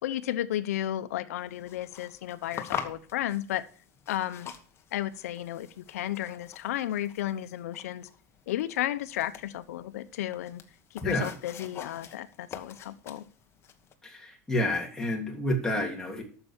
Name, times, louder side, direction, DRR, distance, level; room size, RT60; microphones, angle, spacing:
voice 1, 0.0-3.6 4.1-4.5 4.9-8.1 8.5-10.6 10.9-13.2, left 13 dB, 90° left, 14 dB, 0.9 m, -33 dB
sound 1, 1.4-13.9, left 8 dB, 35° left, 1.4 m, -45 dB
voice 2, 11.0-11.3 14.0-16.2, left 1 dB, 5° left, 0 dB, 3.0 m, -29 dB
8.8 x 6.9 x 7.0 m, 0.42 s
supercardioid pair, 125°, 8 cm